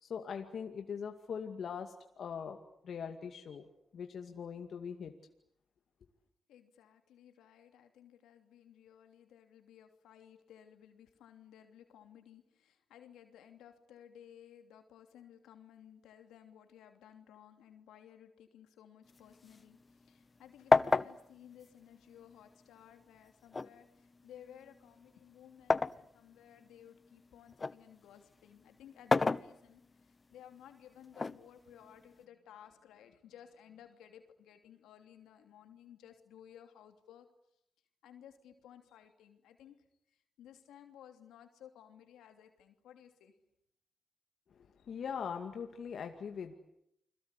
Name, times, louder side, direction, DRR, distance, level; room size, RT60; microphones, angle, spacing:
voice 1, 0.0-2.6 2.8-3.6 3.9-5.1 44.5-46.6, left 7 dB, 70° left, 5 dB, 2.3 m, -41 dB
voice 2, 6.5-37.3 38.0-39.8 40.1-43.3 44.8-44.9, left 10 dB, 90° left, 6 dB, 3.0 m, -57 dB
sound 1, 19.1-20.4 20.7-22.7 23.5-26.0 26.6-27.8 28.9-30.0 31.1-32.2, left 3 dB, 40° left, 1.1 m, -32 dB
29.5 x 22.0 x 8.3 m, 0.75 s
supercardioid pair, 50°, 0 cm